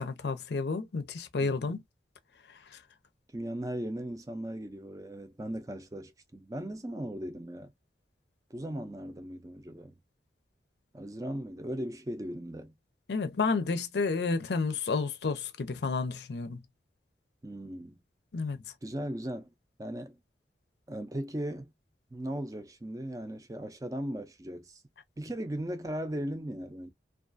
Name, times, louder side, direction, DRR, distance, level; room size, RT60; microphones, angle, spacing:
voice 1, 0.0-1.8 13.1-16.6 18.3-18.6, left 4 dB, 75° left, 0.5 m, -31 dB
voice 2, 1.4-1.8 3.3-7.7 8.5-9.9 10.9-12.7 17.4-17.9 18.8-19.5 19.8-20.2 20.9-21.7 22.1-24.8 25.2-26.9, right 1 dB, 20° right, 0.4 m, -37 dB
2.4 x 2.4 x 2.5 m
head